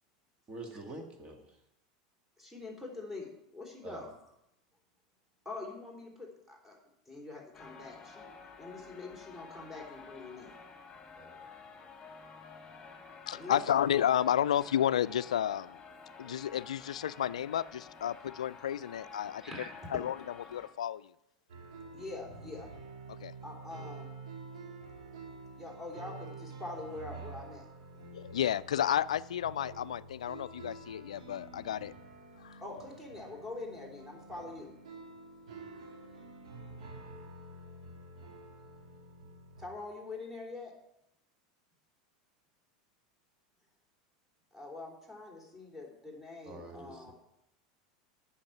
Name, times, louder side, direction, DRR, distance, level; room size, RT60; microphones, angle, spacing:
voice 1, 0.5-1.6 3.8-4.1 11.2-11.5 46.4-47.1, right 2 dB, 30° right, 4 dB, 2.1 m, -46 dB
voice 2, 2.4-4.1 5.5-6.8 7.1-8.3 8.6-10.5 13.3-13.6 19.4-19.7 21.9-22.7 23.4-24.2 25.5-27.7 32.6-34.7 39.6-40.7 44.5-47.1, left 3 dB, 5° right, 1 dB, 3.6 m, -44 dB
sound 1, 7.5-20.7, left 5 dB, 20° left, 2.2 m, -51 dB
voice 3, 13.3-15.8 16.2-19.4 19.9-20.2 20.5-21.1 23.1-23.3 28.1-31.9 32.4-32.6, left 10 dB, 85° left, 18 dB, 0.3 m, -31 dB
sound 2, 21.5-39.7, right 3 dB, 80° right, 2.7 m, -49 dB
8.9 x 6.5 x 7.9 m, 0.82 s
hypercardioid pair, 95°, 3 cm